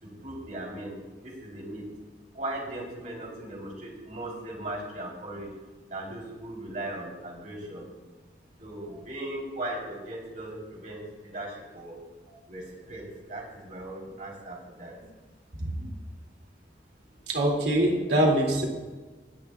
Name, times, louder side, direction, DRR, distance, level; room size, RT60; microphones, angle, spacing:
voice 1, 0.0-1.0 1.2-1.9 2.3-5.5 5.9-7.8 8.6-12.0 12.5-15.0, right 1 dB, 50° right, -3 dB, 3.5 m, -38 dB
voice 2, 15.6-15.9 17.3-18.7, right 1 dB, 75° right, -1 dB, 2.4 m, -24 dB
20.0 x 10.5 x 2.3 m, 1.3 s
head